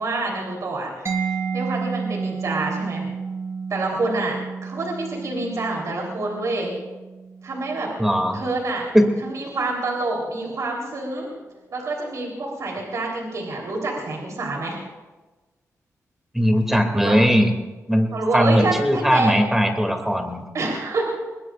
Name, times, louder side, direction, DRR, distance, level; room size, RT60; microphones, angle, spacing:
voice 1, 0.0-3.1 3.7-4.4 4.6-6.7 7.4-7.9 8.3-8.9 9.2-11.3 11.7-14.8 16.9-17.2 18.1-19.3 20.5-21.1, right 2 dB, 65° right, -1 dB, 3.8 m, -27 dB
Mallet percussion, 1.1-8.6, right 5 dB, 50° right, 1.9 m, -31 dB
voice 2, 8.0-8.4 8.9-9.1 16.3-17.5 17.9-20.5, equal, 5° right, 4 dB, 2.6 m, -19 dB
23.0 x 21.0 x 2.5 m, 1.2 s
wide cardioid pair, 105°, 6 cm